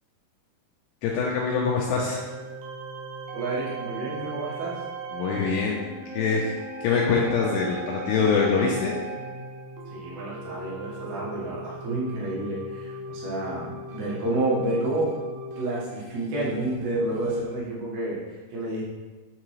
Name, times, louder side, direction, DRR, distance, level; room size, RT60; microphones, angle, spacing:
voice 1, 1.0-2.2 5.1-5.8 6.1-6.6 6.8-9.0, left 5 dB, 85° left, -2 dB, 2.5 m, -24 dB
sound 1, 1.7-17.4, right 2 dB, 85° right, 3.3 m, -38 dB
voice 2, 3.3-4.8 9.9-15.1 15.6-18.8, right 2 dB, 65° right, -6 dB, 1.7 m, -29 dB
8.7 x 3.7 x 3.2 m, 1.3 s
omnidirectional pair, 5.4 m